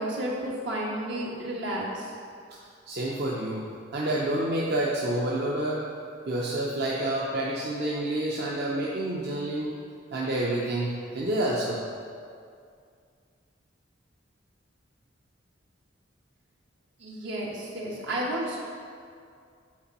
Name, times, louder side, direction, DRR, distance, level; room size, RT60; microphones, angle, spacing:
voice 1, 0.0-2.1 17.0-18.6, right 1 dB, 80° right, -4 dB, 1.5 m, -32 dB
voice 2, 2.9-5.8 6.3-9.7 10.1-11.8, right 1 dB, 60° right, -5 dB, 0.7 m, -28 dB
8.7 x 4.4 x 4.2 m, 2.3 s
head